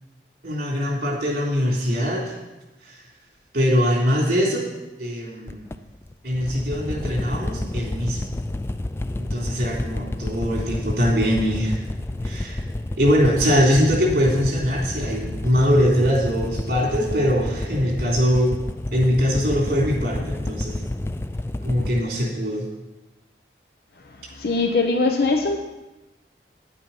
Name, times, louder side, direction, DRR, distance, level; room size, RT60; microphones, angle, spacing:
voice 1, 0.4-2.4 2.8-3.0 3.5-4.7 5.0-5.6 6.2-8.4 9.2-11.8 12.2-12.6 13.0-18.6 18.9-20.8 21.6-22.7, equal, 55° right, -2 dB, 3.3 m, -22 dB
sound 1, 5.5-22.0, left 1 dB, 15° left, 0.3 m, -30 dB
voice 2, 24.4-25.6, left 3 dB, 60° left, 4 dB, 0.8 m, -21 dB
9.8 x 8.8 x 5.5 m, 1.0 s
head